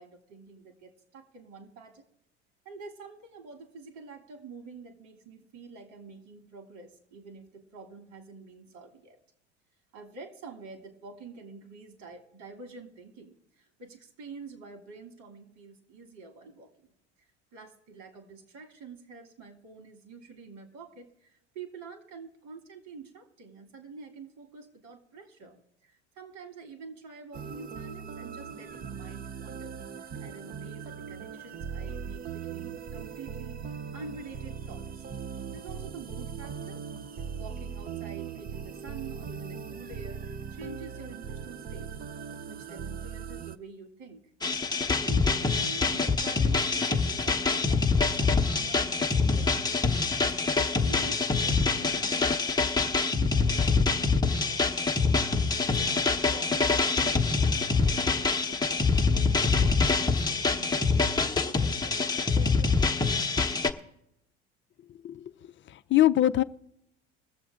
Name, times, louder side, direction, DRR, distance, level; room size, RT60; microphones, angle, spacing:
voice 1, 0.0-2.0 2.6-9.2 9.9-16.7 17.5-21.1 21.5-29.8 30.2-33.6 33.9-35.0 35.5-36.8 37.4-41.9 42.5-44.2 44.9-49.6 50.2-55.2 55.7-58.9 59.6-63.2, right 4 dB, 60° right, 6 dB, 2.8 m, -47 dB
sound 1, 27.3-43.6, right 7 dB, 25° right, 0.6 m, -39 dB
sound 2, 44.4-63.7, left 4 dB, 10° left, 1.0 m, -25 dB
voice 2, 65.7-66.4, left 13 dB, 35° left, 13 dB, 0.6 m, -23 dB
21.5 x 7.4 x 3.7 m, 0.81 s
hypercardioid pair, 75°, 34 cm